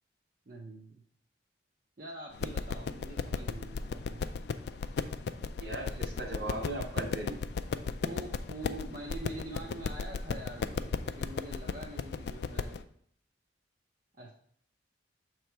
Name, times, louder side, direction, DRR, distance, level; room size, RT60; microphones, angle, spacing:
voice 1, 0.5-1.0 2.0-4.2 8.0-12.8 14.2-14.3, right 1 dB, 50° right, -2 dB, 0.7 m, -45 dB
sound 1, 2.3-12.8, left 5 dB, 60° left, 0.3 m, -35 dB
voice 2, 5.6-7.4, right 2 dB, 70° right, 1 dB, 1.7 m, -38 dB
7.0 x 3.1 x 4.5 m, 0.64 s
head